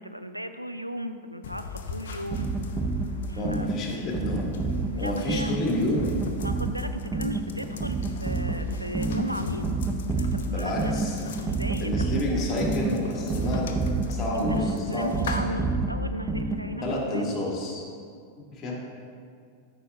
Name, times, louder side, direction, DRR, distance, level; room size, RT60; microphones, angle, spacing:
voice 1, 0.0-2.5 3.3-3.7 4.9-5.6 6.4-9.7 10.2-11.0 11.4-12.0 14.3-17.4, equal, 90° right, 9 dB, 0.3 m, -36 dB
sound 1, 1.4-15.4, left 5 dB, 60° left, 0.6 m, -40 dB
sound 2, 2.3-17.0, right 3 dB, 15° right, 0.6 m, -29 dB
voice 2, 3.4-4.5 5.0-6.1 10.5-11.2 11.8-13.8 14.1-15.4 15.8-15.9 16.8-17.8 18.4-18.8, left 1 dB, 25° left, -3 dB, 1.9 m, -30 dB
13.5 x 5.9 x 2.4 m, 2.2 s
figure-of-eight pair, 90°, 0 cm